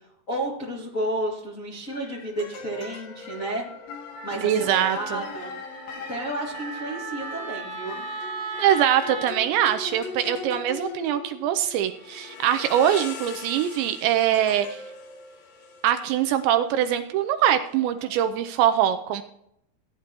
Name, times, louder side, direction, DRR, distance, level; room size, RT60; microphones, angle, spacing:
voice 1, 0.0-3.6 4.2-5.5 6.1-8.0, right 1 dB, 80° left, -5 dB, 0.7 m, -31 dB
sound 1, 0.7-1.0 1.9-18.6, left 4 dB, 65° left, 2.5 m, -41 dB
Wind instrument woodwind instrument, 4.1-9.3, right 3 dB, 55° right, 0.8 m, -37 dB
voice 2, 4.4-5.2 8.6-14.8 15.8-19.2, right 10 dB, 85° right, 9 dB, 2.6 m, -23 dB
16.0 x 9.7 x 2.9 m, 0.75 s
omnidirectional pair, 5.6 m